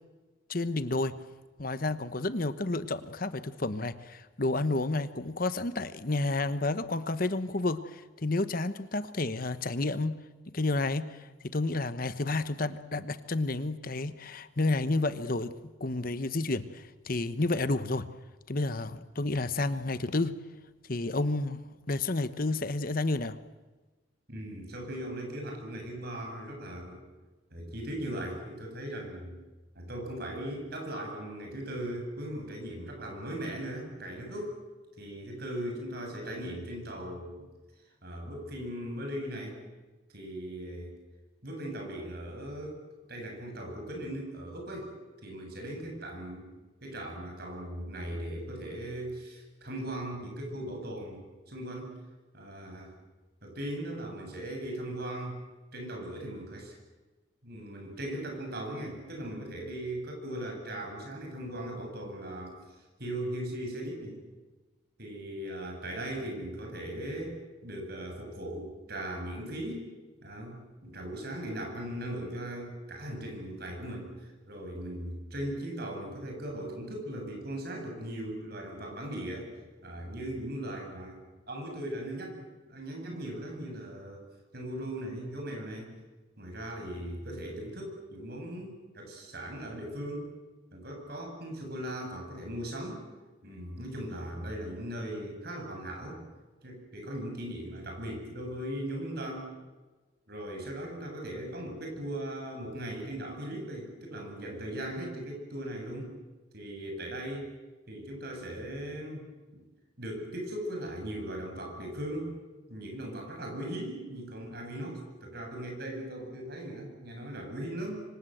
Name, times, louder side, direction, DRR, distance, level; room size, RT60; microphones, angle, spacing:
voice 1, 0.5-1.2 1.6-10.2 10.5-15.5 15.8-18.1 18.5-20.4 20.9-21.6 21.9-23.4, left 2 dB, 45° left, 12 dB, 1.1 m, -30 dB
voice 2, 24.3-27.0 27.5-29.4 29.7-34.6 35.0-37.5 38.0-39.6 40.1-41.0 41.4-42.8 43.1-44.9 45.2-46.5 46.8-52.0 52.3-52.9 53.4-55.4 55.7-56.7 57.4-62.6 63.0-64.2 65.0-67.4 67.6-69.9 70.2-79.5 79.8-81.2 81.5-84.2 84.5-85.9 86.4-90.3 90.7-93.0 93.4-96.2 96.6-99.5 100.3-106.1 106.5-107.5 107.9-109.2 109.5-109.6 110.0-112.3 112.7-118.0, right 1 dB, 50° right, 2 dB, 7.9 m, -38 dB
26.5 x 25.5 x 7.9 m, 1.2 s
head